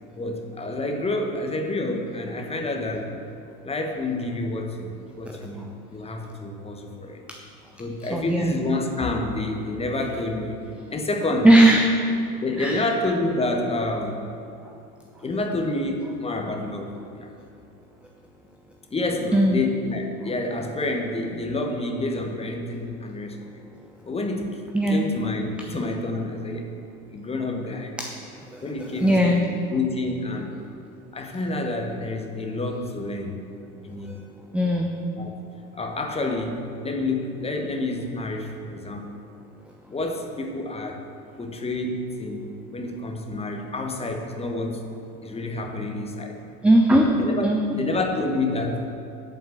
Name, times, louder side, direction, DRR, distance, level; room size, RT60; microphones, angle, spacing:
voice 1, 0.2-3.1 3.6-7.2 7.8-10.6 10.9-11.5 12.4-14.2 15.2-17.3 18.9-23.6 24.0-24.5 24.9-26.7 27.1-28.0 28.6-30.5 31.1-33.4 33.8-34.1 35.2-35.4 35.7-39.1 39.9-41.0 41.4-44.9 45.2-46.4 46.9-48.9, left 2 dB, 15° left, 3 dB, 1.2 m, -28 dB
voice 2, 8.1-8.5 11.4-11.9 12.6-12.8 19.3-19.6 24.7-25.0 28.0-28.1 29.0-29.4 34.5-34.9 46.6-47.1 47.4-47.6, right 1 dB, 5° right, 2 dB, 0.5 m, -17 dB
8.5 x 7.4 x 7.5 m, 2.6 s
figure-of-eight pair, 75°, 44 cm